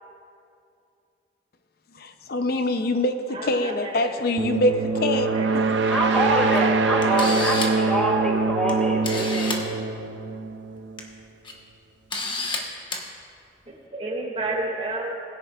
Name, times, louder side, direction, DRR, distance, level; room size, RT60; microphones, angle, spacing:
voice 1, 1.9-5.3, left 1 dB, 60° left, 8 dB, 0.6 m, -24 dB
voice 2, 3.3-5.6 13.7-15.1, right 2 dB, 35° right, -2 dB, 2.2 m, -32 dB
sound 1, 4.4-11.0, right 4 dB, 80° right, 0.5 m, -24 dB
voice 3, 5.9-9.6, right 1 dB, 5° left, -2 dB, 2.1 m, -25 dB
Camera, 6.5-6.6 7.0-7.8 8.7-8.8 9.0-9.6 10.8-11.0 11.4-11.5 12.1-12.6 12.9-13.0, left 3 dB, 30° left, 1.2 m, -29 dB
20.5 x 10.5 x 2.4 m, 2.5 s
head